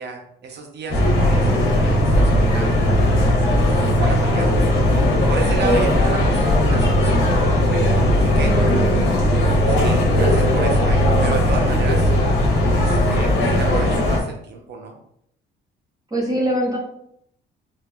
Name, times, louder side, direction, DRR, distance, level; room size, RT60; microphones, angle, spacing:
voice 1, 0.0-3.2 3.7-4.6 5.3-7.3 7.5-7.9 8.2-8.6 9.7-12.1 12.7-15.0, right 4 dB, 60° right, 3 dB, 0.8 m, -31 dB
sound 1, 0.9-14.2, left 1 dB, 85° left, 0.9 m, -17 dB
voice 2, 5.4-5.9 8.4-9.0 16.1-16.8, right 1 dB, 20° right, -4 dB, 0.9 m, -23 dB
3.8 x 2.6 x 2.3 m, 0.72 s
cardioid pair, 90°, 20 cm